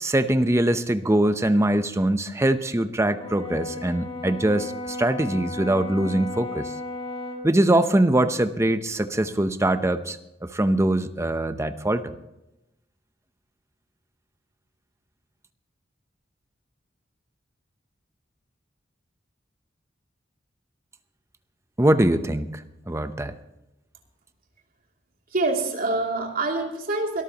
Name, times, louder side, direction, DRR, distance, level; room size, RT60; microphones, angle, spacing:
voice 1, 0.0-6.7 7.4-12.1 21.8-22.6 22.9-23.3, right 1 dB, 15° right, 10 dB, 0.7 m, -22 dB
Brass instrument, 3.2-7.5, left 2 dB, 30° left, 1.5 m, -34 dB
voice 2, 25.3-27.2, right 2 dB, 50° right, 0 dB, 2.8 m, -25 dB
23.5 x 13.5 x 3.0 m, 0.91 s
head